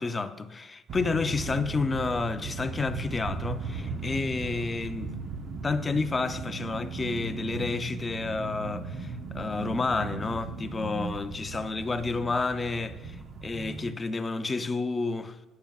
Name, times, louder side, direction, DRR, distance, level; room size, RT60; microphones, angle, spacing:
voice 1, 0.0-5.2 5.6-15.4, left 3 dB, 15° left, 0.3 m, -30 dB
sound 1, 0.9-13.9, right 4 dB, 40° right, 0.6 m, -37 dB
16.0 x 5.7 x 2.3 m
cardioid pair, 160°, 0 cm